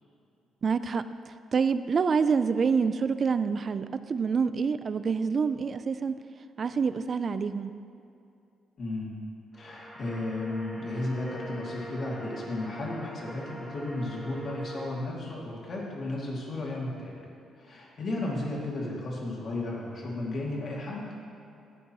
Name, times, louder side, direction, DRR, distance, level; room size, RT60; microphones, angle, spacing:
voice 1, 0.6-1.0 1.5-6.2 6.6-7.7, right 5 dB, 45° right, 13 dB, 0.4 m, -27 dB
voice 2, 8.8-9.2 9.6-17.1 17.6-21.1, left 2 dB, 55° left, -3 dB, 2.3 m, -34 dB
sound 1, 9.5-14.9, right 1 dB, ahead, 1.6 m, -43 dB
12.0 x 9.2 x 3.0 m, 2.7 s
cardioid pair, 90°, 0 cm